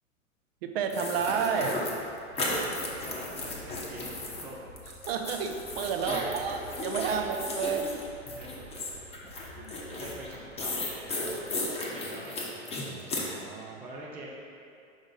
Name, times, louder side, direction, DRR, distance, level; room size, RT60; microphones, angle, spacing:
voice 1, 0.6-1.8 5.1-7.9 12.9-13.8, right 6 dB, 50° right, 5 dB, 0.6 m, -31 dB
sound 1, 0.9-4.4 4.8-13.3, left 2 dB, 15° left, 0.8 m, -35 dB
sound 2, 1.5-12.2, left 1 dB, 80° right, 1.3 m, -51 dB
voice 2, 2.6-4.7 6.0-6.3 8.2-8.7 9.5-11.4 11.6-12.5 13.8-14.3, right 1 dB, 5° right, -5 dB, 0.3 m, -45 dB
5.2 x 4.9 x 3.9 m, 2.5 s
hypercardioid pair, 110°, 39 cm